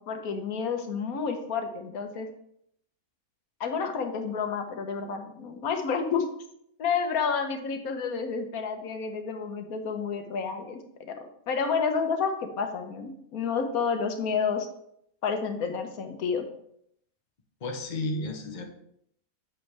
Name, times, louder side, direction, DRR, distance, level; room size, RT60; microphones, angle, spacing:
voice 1, 0.0-2.3 3.6-6.2 6.8-11.1 11.5-14.7 15.2-16.4, left 5 dB, 90° left, 6 dB, 1.4 m, -30 dB
voice 2, 17.6-18.6, left 2 dB, 35° left, 4 dB, 1.0 m, -32 dB
7.8 x 7.2 x 3.4 m, 0.71 s
omnidirectional pair, 1.5 m